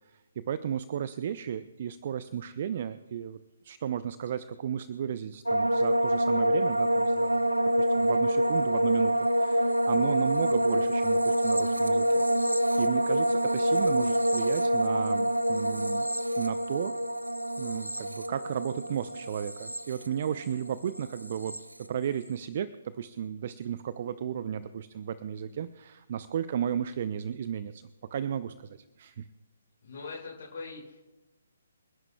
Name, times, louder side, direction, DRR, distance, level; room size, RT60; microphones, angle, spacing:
voice 1, 0.1-3.4 3.6-7.4 7.7-16.1 16.4-16.9 17.6-27.8 28.1-29.3, right 9 dB, 40° right, 14 dB, 0.5 m, -34 dB
sound 1, 5.5-20.7 20.9-21.6, equal, 85° right, 0.7 m, -26 dB
voice 2, 29.8-31.0, left 4 dB, 50° left, -5 dB, 5.5 m, -41 dB
29.5 x 11.0 x 2.3 m, 1.1 s
figure-of-eight pair, 135°, 0 cm